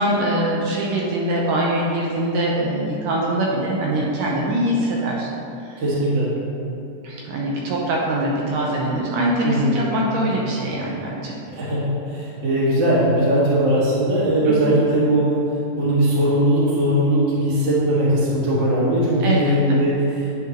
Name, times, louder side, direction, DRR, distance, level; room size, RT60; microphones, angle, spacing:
voice 1, 0.0-5.3 5.6-5.8 7.0-11.4 14.5-14.6 19.2-19.8, right 1 dB, 80° right, -3 dB, 2.2 m, -23 dB
voice 2, 5.8-6.3 9.4-9.8 11.5-15.4 15.7-20.4, right 1 dB, 40° right, -9 dB, 1.8 m, -19 dB
9.1 x 4.7 x 3.0 m, 2.8 s
omnidirectional pair, 3.8 m